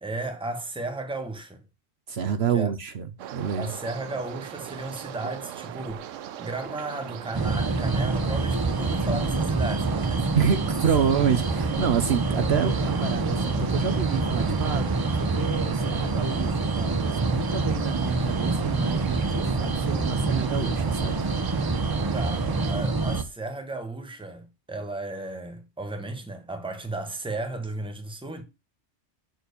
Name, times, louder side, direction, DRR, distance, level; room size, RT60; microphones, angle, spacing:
voice 1, 0.0-1.6 2.5-2.7 3.6-10.3 11.0-11.1 22.1-28.4, right 2 dB, 5° right, 1.1 m, -34 dB
voice 2, 2.1-3.0 3.3-3.7 10.3-21.3, right 7 dB, 60° right, 0.9 m, -28 dB
sound 1, 3.2-22.7, right 11 dB, 90° right, 1.0 m, -39 dB
sound 2, 7.3-23.2, right 3 dB, 30° right, 0.4 m, -26 dB
6.7 x 4.4 x 6.7 m
omnidirectional pair, 1.3 m